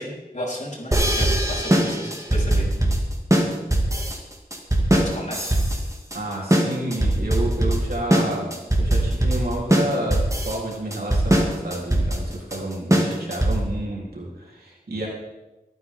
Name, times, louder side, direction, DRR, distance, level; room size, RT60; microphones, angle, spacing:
voice 1, 0.0-2.9 4.9-5.6, left 1 dB, 50° left, -3 dB, 4.5 m, -33 dB
sound 1, 0.9-13.8, right 1 dB, 20° right, 2.4 m, -21 dB
voice 2, 6.1-15.1, right 1 dB, 85° right, -4 dB, 3.8 m, -30 dB
23.5 x 9.5 x 3.8 m, 1.1 s
wide cardioid pair, 45°, 15 cm